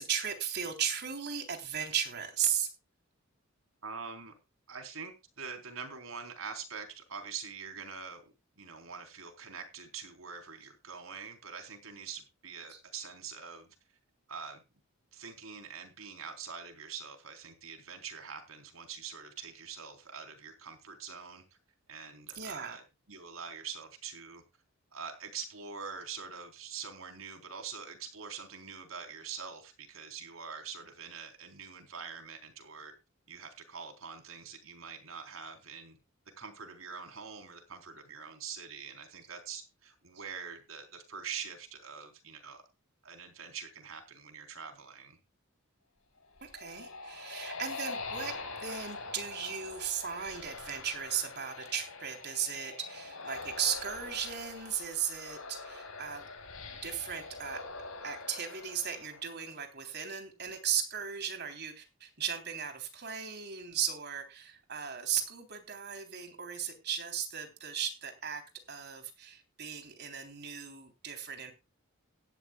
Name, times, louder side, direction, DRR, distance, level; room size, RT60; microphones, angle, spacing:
voice 1, 0.0-2.7 12.7-12.8 22.4-22.8 40.2-40.3 46.4-56.3 56.8-57.6 58.0-68.4 68.7-71.5, right 8 dB, 50° right, 5 dB, 3.6 m, -36 dB
voice 2, 3.8-4.3 4.7-8.2 8.6-13.8 14.3-14.6 15.1-21.4 21.9-22.8 23.1-24.4 24.9-32.9 33.3-36.0 36.4-42.6 43.0-45.2, right 6 dB, 75° right, 5 dB, 3.9 m, -44 dB
sound 1, 46.2-59.7, left 3 dB, 80° left, 5.4 m, -44 dB
17.0 x 12.5 x 2.4 m, 0.27 s
head